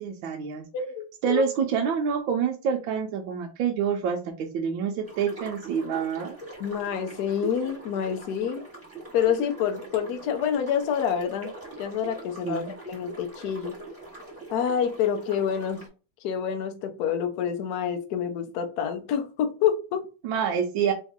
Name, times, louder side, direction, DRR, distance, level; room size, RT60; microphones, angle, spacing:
voice 1, 0.0-0.6 1.2-6.4 12.4-12.7 20.2-20.9, right 7 dB, 75° right, 1.3 m, -27 dB
voice 2, 0.7-1.4 6.6-8.6 9.1-11.5 11.8-13.8 14.5-15.9 16.2-20.1, left 8 dB, 65° left, 1.0 m, -27 dB
sound 1, 5.1-15.9, right 2 dB, 5° right, 1.6 m, -42 dB
3.5 x 3.1 x 3.5 m
omnidirectional pair, 2.3 m